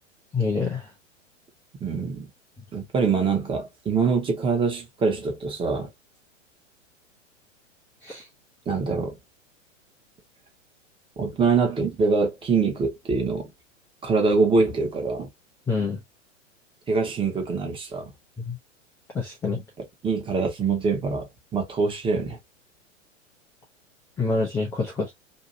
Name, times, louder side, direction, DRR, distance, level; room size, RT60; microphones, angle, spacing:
voice 1, 0.3-0.8 8.0-8.2 15.7-16.0 18.4-18.6 19.1-19.6 24.2-25.1, left 4 dB, 5° left, 0.4 m, -26 dB
voice 2, 1.8-2.3 2.7-5.9 8.7-9.2 11.2-13.5 14.0-15.3 16.9-18.1 19.8-22.4, right 4 dB, 15° right, 0.9 m, -24 dB
2.7 x 2.6 x 2.6 m
figure-of-eight pair, 105°, 38 cm